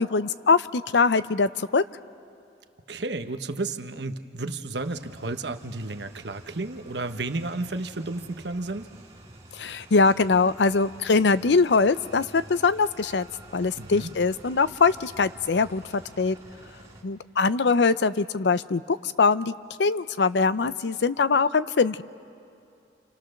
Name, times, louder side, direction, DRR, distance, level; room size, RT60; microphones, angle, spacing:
voice 1, 0.0-1.8 9.6-13.3 13.5-16.4 17.0-19.5 19.8-22.0, left 4 dB, 85° left, 15 dB, 0.6 m, -22 dB
voice 2, 2.9-8.9 13.8-14.1, right 2 dB, 85° right, 7 dB, 1.1 m, -32 dB
sound 1, 4.8-17.0, right 1 dB, 20° right, 3.1 m, -49 dB
29.0 x 28.5 x 6.6 m, 2.5 s
head